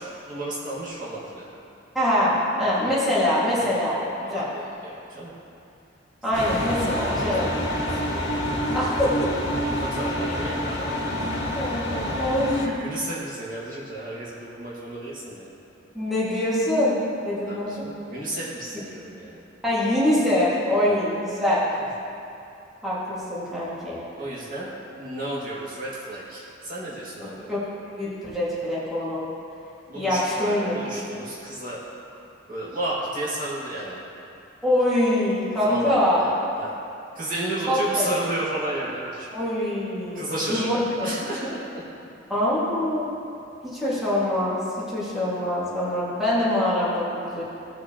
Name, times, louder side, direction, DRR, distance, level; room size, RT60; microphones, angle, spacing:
voice 1, 0.0-1.5 3.6-5.3 6.3-6.6 6.9-8.2 9.6-11.0 11.9-15.5 17.5-19.4 20.8-21.0 24.2-24.7 25.0-27.5 29.9-31.9 32.5-34.0 35.6-36.7 37.1-39.3 40.1-41.8, right 1 dB, 45° right, -8 dB, 2.2 m, -33 dB
voice 2, 1.9-4.5 6.2-7.6 8.7-9.3 11.5-11.9 12.2-12.7 15.9-17.8 19.6-21.6 22.8-24.0 27.2-27.6 28.0-29.3 29.9-30.8 34.6-36.3 37.7-38.2 39.3-41.1 42.3-43.1 43.6-47.4, left 1 dB, ahead, -10 dB, 2.1 m, -24 dB
sound 1, 6.3-12.7, equal, 60° left, 2.0 m, -27 dB
17.5 x 6.3 x 3.0 m, 2.7 s
head